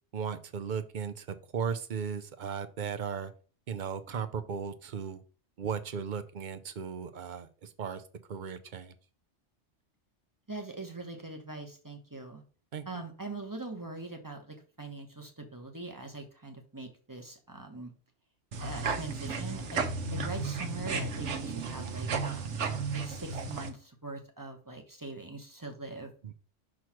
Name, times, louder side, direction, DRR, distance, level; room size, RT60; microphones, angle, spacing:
voice 1, 0.1-1.3 1.5-3.3 3.7-5.2 5.6-8.0 8.3-8.9 12.7-13.0 26.2-26.3, right 6 dB, 50° right, 10 dB, 0.7 m, -36 dB
voice 2, 10.5-12.4 12.9-17.9 18.6-19.8 20.1-22.6 22.9-26.1, right 2 dB, 20° right, 3 dB, 0.9 m, -42 dB
sound 1, 18.5-23.7, right 4 dB, 70° right, 1.2 m, -34 dB
6.2 x 3.1 x 5.8 m, 0.39 s
omnidirectional pair, 1.3 m